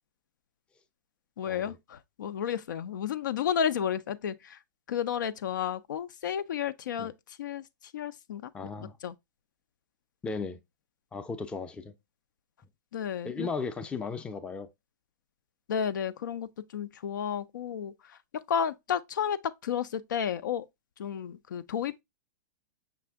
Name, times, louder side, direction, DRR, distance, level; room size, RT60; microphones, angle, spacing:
voice 1, 1.4-4.6 4.9-7.1 7.4-7.6 7.9-8.5 8.8-9.1 12.9-13.5 15.7-17.9 18.5-20.7 21.0-22.0, left 8 dB, 90° left, 0.4 m, -32 dB
voice 2, 8.5-9.0 10.2-10.6 11.1-11.9 13.2-14.7, left 4 dB, 10° left, 0.4 m, -36 dB
5.8 x 2.6 x 3.4 m
hypercardioid pair, 145°, 10 cm